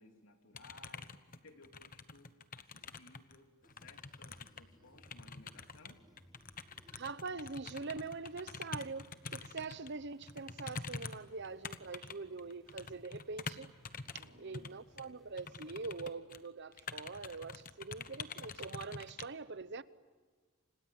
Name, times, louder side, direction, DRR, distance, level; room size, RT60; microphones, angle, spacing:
voice 1, 0.0-6.0 14.2-14.8, left 2 dB, 70° left, 3.1 m, -61 dB
sound 1, 0.5-3.4 3.6-9.9 10.2-14.3 14.5-14.7 15.0-15.1 15.4-16.5 16.7-19.3, left 5 dB, 40° left, 1.0 m, -46 dB
sound 2, 3.6-16.2, equal, ahead, 4.8 m, -66 dB
voice 2, 6.9-13.7 14.1-19.8, right 4 dB, 55° right, 0.9 m, -44 dB
29.0 x 26.5 x 7.8 m
head